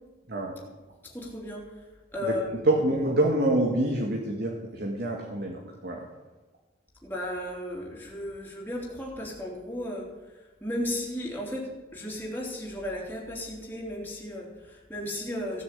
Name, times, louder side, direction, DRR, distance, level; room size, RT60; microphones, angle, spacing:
voice 1, 1.0-1.6 2.1-2.6 7.0-10.1 10.6-15.6, left 1 dB, 10° left, -2 dB, 3.2 m, -34 dB
voice 2, 2.6-6.1, right 1 dB, 55° right, 0 dB, 1.9 m, -26 dB
16.5 x 7.7 x 8.4 m, 1.2 s
head